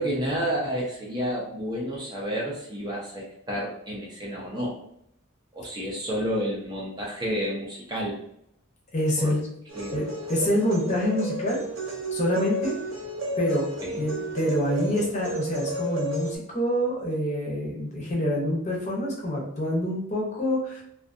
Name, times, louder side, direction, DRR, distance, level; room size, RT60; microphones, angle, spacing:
voice 1, 0.0-4.8 5.5-8.2 9.2-9.3 9.7-10.0 13.8-14.1, equal, 20° right, -4 dB, 0.5 m, -30 dB
voice 2, 8.9-9.4 9.9-11.6 12.1-12.8 13.4-20.8, equal, 35° left, -3 dB, 0.7 m, -26 dB
sound 1, 9.7-16.4, right 1 dB, 75° right, 0.6 m, -32 dB
2.5 x 2.4 x 2.5 m, 0.73 s
head